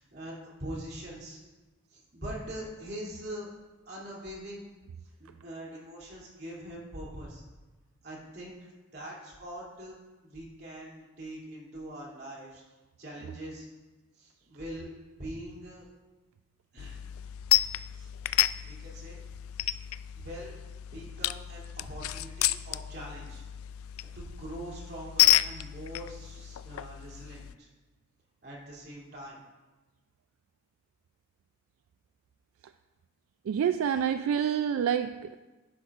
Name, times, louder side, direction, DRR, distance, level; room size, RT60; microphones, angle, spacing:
voice 1, 0.0-1.4 1.9-3.5 3.9-4.7 5.2-7.4 8.0-8.6 8.9-10.0 10.2-12.6 13.0-13.7 14.1-14.9 15.1-15.8 16.7-17.0 18.0-18.1 18.6-19.2 20.2-20.6 20.9-23.4 24.0-27.7 28.4-29.4, right 1 dB, 50° right, -4 dB, 2.8 m, -42 dB
sound 1, 16.8-27.5, left 16 dB, 85° left, 0.3 m, -31 dB
voice 2, 33.5-35.4, right 8 dB, 80° right, 10 dB, 0.3 m, -27 dB
11.5 x 10.0 x 2.4 m, 1.2 s
head